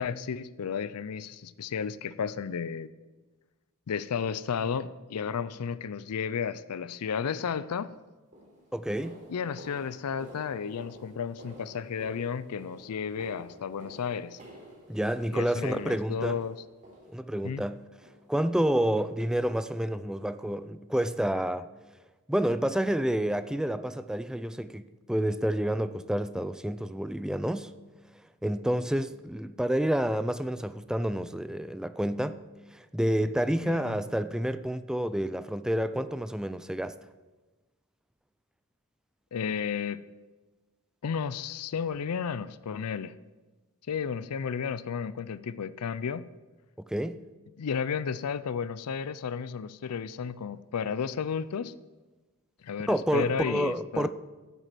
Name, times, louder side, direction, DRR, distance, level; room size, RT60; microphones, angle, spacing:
voice 1, 0.0-2.9 3.9-7.9 9.3-14.4 15.3-16.6 17.4-17.6 33.6-34.0 39.3-40.0 41.0-43.1 43.9-46.2 47.6-51.7 52.6-54.1, left 6 dB, 85° left, 0.5 m, -33 dB
sound 1, 8.3-17.5 18.0-18.4 18.6-18.8 19.2-19.4 19.8-19.9 20.5-20.6, equal, 35° right, 3.8 m, -50 dB
voice 2, 8.7-9.2 14.9-16.4 17.1-17.8 18.3-21.7 22.3-27.7 28.4-32.4 32.7-36.9 46.8-47.2 52.9-54.1, right 1 dB, 5° right, 0.4 m, -29 dB
11.5 x 8.2 x 7.6 m
head